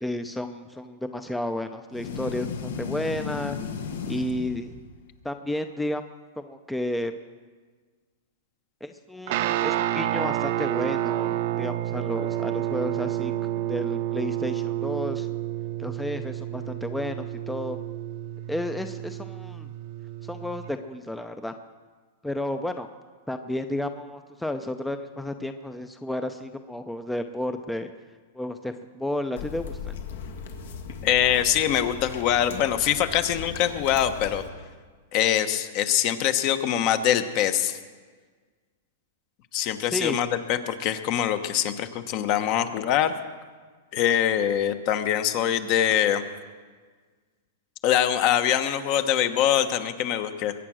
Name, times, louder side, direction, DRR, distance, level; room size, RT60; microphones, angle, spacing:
voice 1, 0.0-3.6 4.1-4.8 5.2-6.0 6.4-7.1 8.8-15.3 15.8-17.8 18.5-19.7 20.2-21.5 22.2-22.9 23.3-27.9 28.3-29.9 39.9-40.2, left 1 dB, 5° left, 8 dB, 0.6 m, -32 dB
sound 1, 1.9-5.1, left 6 dB, 85° left, 1.6 m, -34 dB
Guitar, 9.3-20.7, right 13 dB, 55° right, 0.7 m, -29 dB
sound 2, 29.4-34.5, left 6 dB, 70° left, 1.9 m, -38 dB
voice 2, 31.0-34.4 35.1-37.8 39.5-43.1 43.9-46.2 47.8-50.5, left 10 dB, 45° left, 10 dB, 1.1 m, -23 dB
22.0 x 8.9 x 6.3 m, 1.5 s
hypercardioid pair, 145°, 0 cm